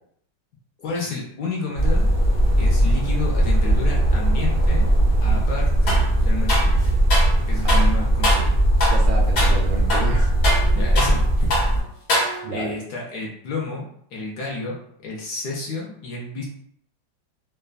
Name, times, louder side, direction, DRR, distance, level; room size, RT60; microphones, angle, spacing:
voice 1, 0.8-2.1 2.6-4.9 5.2-6.8 7.5-8.6 10.5-11.3 12.1-13.9 14.1-14.7 15.0-16.5, left 3 dB, 70° left, -3 dB, 0.9 m, -31 dB
sound 1, 1.8-11.8, right 1 dB, 5° left, 0.5 m, -19 dB
sound 2, 5.9-6.1 6.5-7.4 7.7-7.9 8.2-8.5 8.8-9.1 9.4-9.6 9.9-11.2 11.5-11.7 12.1-12.7, left 1 dB, 55° left, 1.2 m, -24 dB
voice 2, 8.9-10.3 12.4-12.7, right 4 dB, 80° right, -2 dB, 1.4 m, -30 dB
3.3 x 2.1 x 2.3 m, 0.68 s
omnidirectional pair, 2.1 m